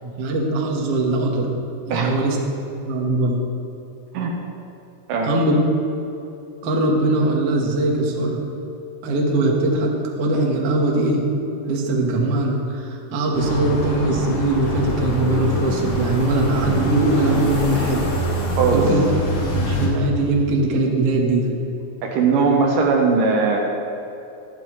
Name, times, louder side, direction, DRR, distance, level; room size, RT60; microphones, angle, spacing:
voice 1, 0.0-1.5 1.9-2.4 2.8-3.4 5.2-5.6 6.6-8.4 9.0-11.3 11.6-18.1 18.7-19.0 19.4-21.5 22.3-22.5, right 2 dB, 55° right, -1 dB, 1.8 m, -21 dB
sound 1, 13.3-19.9, equal, 55° left, 2.9 m, -24 dB
voice 2, 18.6-18.9 22.0-23.6, right 4 dB, 75° right, 1 dB, 2.4 m, -19 dB
13.0 x 11.5 x 3.1 m, 2.9 s
omnidirectional pair, 4.1 m